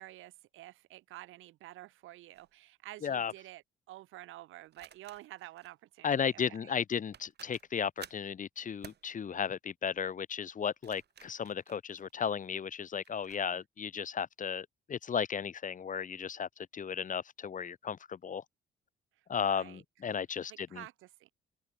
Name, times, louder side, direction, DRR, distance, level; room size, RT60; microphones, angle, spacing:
voice 1, 0.0-6.8 13.3-13.6 19.4-19.8 20.5-21.3, right 16 dB, 85° right, 1.3 m, -50 dB
sound 1, 2.3-2.5 4.7-5.7 6.8-6.9 7.1-8.3 8.8-9.1 10.6-12.5 13.0-13.4, right 9 dB, 55° right, 2.5 m, -54 dB
voice 2, 3.0-3.3 6.0-18.4 19.3-20.8, left 7 dB, 40° left, 1.0 m, -35 dB
cardioid pair, 90°, 20 cm